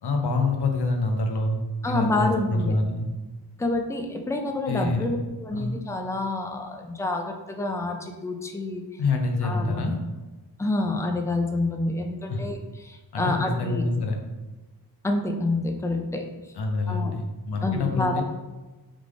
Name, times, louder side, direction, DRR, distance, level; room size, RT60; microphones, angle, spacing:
voice 1, 0.0-3.0 4.7-5.2 5.5-5.8 9.0-9.9 12.3-12.4 13.1-14.2 16.5-18.2, left 2 dB, 70° left, 3 dB, 0.8 m, -26 dB
voice 2, 1.8-2.7 3.6-8.8 9.4-10.0 10.6-12.6 12.8-13.8 15.0-16.3 16.9-17.1 17.6-18.2, left 2 dB, 10° left, 3 dB, 0.4 m, -28 dB
3.6 x 3.3 x 3.7 m, 1.2 s
wide cardioid pair, 90°, 40 cm